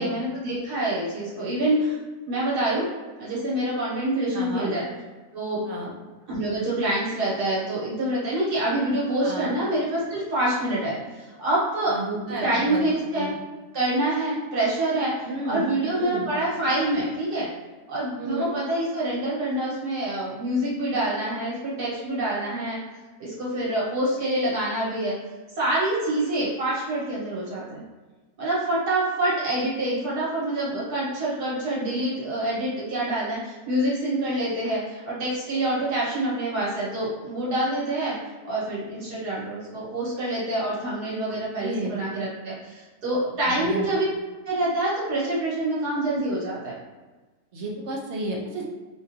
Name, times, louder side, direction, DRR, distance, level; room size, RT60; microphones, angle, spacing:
voice 1, 0.0-2.0 2.3-2.9 3.2-4.8 5.3-5.6 6.3-12.0 12.4-13.3 13.7-17.5 17.9-22.8 23.2-25.1 25.6-27.8 28.4-38.1 38.5-44.1 44.5-46.8, right 1 dB, 80° right, -7 dB, 1.8 m, -26 dB
voice 2, 4.3-4.7 5.6-5.9 9.2-9.6 11.9-12.8 13.1-13.3 15.2-15.6 15.9-16.3 18.2-18.5 41.5-41.9 43.6-43.8 47.5-48.6, right 2 dB, 55° right, -2 dB, 0.8 m, -32 dB
4.6 x 2.5 x 2.7 m, 1.2 s
omnidirectional pair, 1.7 m